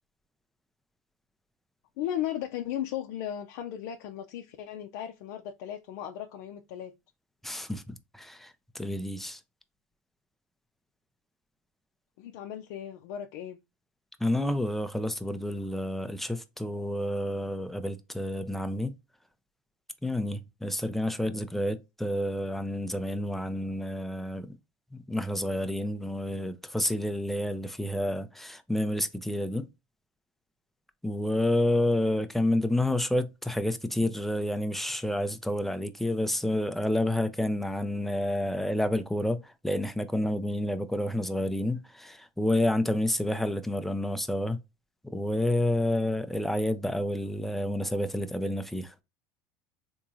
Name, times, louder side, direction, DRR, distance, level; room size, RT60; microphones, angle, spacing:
voice 1, 2.0-6.9 12.2-13.6, left 11 dB, 70° left, 0.5 m, -36 dB
voice 2, 7.4-9.4 14.2-18.9 20.0-24.5 24.9-29.7 31.0-44.6 45.1-48.9, left 1 dB, 5° left, 0.5 m, -29 dB
3.5 x 3.0 x 2.6 m
supercardioid pair, 105°, 10 cm